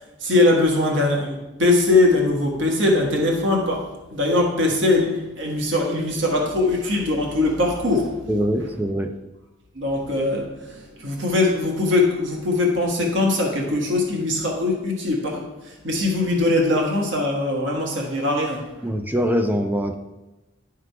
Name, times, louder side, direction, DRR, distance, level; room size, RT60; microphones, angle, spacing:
voice 1, 0.2-8.2 9.7-18.6, left 2 dB, 70° right, 0 dB, 1.5 m, -21 dB
voice 2, 8.3-9.1 18.8-19.9, equal, 10° right, 7 dB, 0.4 m, -23 dB
11.0 x 3.7 x 4.6 m, 1.1 s
head